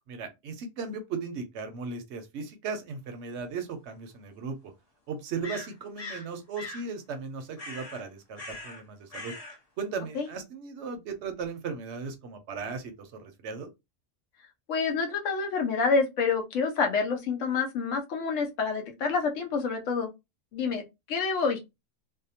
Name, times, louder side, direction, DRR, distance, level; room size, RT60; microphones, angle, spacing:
voice 1, 0.1-4.7 5.1-9.3 9.8-13.7, right 5 dB, 65° right, 0.8 m, -37 dB
sound 1, 3.4-3.5 5.4-6.3 6.6-6.9 7.6-8.0 8.3-8.8 9.1-9.6, left 2 dB, 40° left, 0.6 m, -41 dB
voice 2, 14.7-20.1 20.5-20.8 21.1-21.6, left 5 dB, 80° left, 1.0 m, -27 dB
2.6 x 2.0 x 2.7 m
omnidirectional pair, 1.3 m